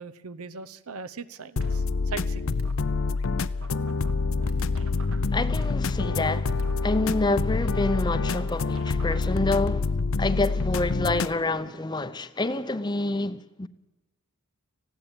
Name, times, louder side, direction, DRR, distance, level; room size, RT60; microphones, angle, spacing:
voice 1, 0.0-2.5, right 5 dB, 80° right, 0.9 m, -39 dB
sound 1, 1.6-11.3, left 4 dB, 65° left, 0.6 m, -26 dB
sound 2, 1.6-2.2 2.5-2.7 3.2-3.3 3.6-6.2 6.5-6.7 7.6-9.6, right 2 dB, 65° right, 2.1 m, -44 dB
voice 2, 5.3-6.5 6.8-9.9 10.2-13.7, left 2 dB, 20° left, 0.6 m, -27 dB
19.5 x 15.5 x 9.0 m
head